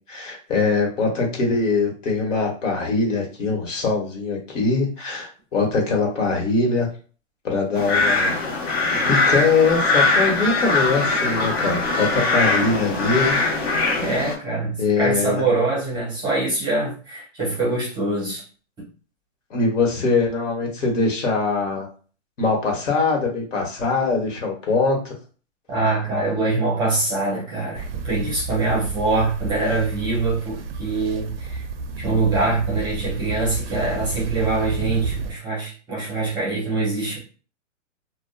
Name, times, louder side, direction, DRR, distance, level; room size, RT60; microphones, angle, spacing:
voice 1, 0.1-6.9 7.4-8.4 8.9-13.4 14.8-15.5 19.5-21.9 22.4-25.1, left 4 dB, 70° left, 0 dB, 1.2 m, -22 dB
sound 1, 7.7-14.3, left 3 dB, 50° left, 1.1 m, -21 dB
voice 2, 14.0-18.4 18.8-18.9 25.7-31.6 32.0-37.2, right 3 dB, 10° right, -6 dB, 0.7 m, -24 dB
sound 2, 27.7-35.3, right 3 dB, 50° right, 0.4 m, -31 dB
2.6 x 2.2 x 2.2 m, 0.39 s
hypercardioid pair, 145°, 39 cm